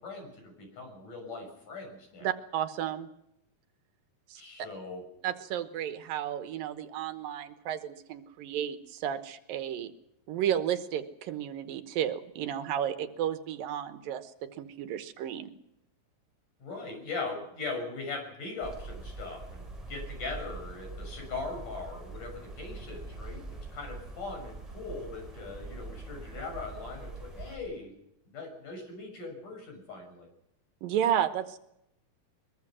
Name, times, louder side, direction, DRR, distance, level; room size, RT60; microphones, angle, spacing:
voice 1, 0.0-2.3 4.4-5.0 16.6-27.9 28.3-30.3, left 3 dB, 60° left, 4 dB, 8.0 m, -40 dB
voice 2, 2.2-3.1 4.3-4.4 5.2-9.9 10.3-14.3 14.6-15.5 30.8-31.6, right 10 dB, 75° right, 10 dB, 2.8 m, -32 dB
sound 1, 18.6-27.6, right 3 dB, 10° right, 7.5 m, -43 dB
22.5 x 22.5 x 6.2 m, 0.81 s
omnidirectional pair, 4.2 m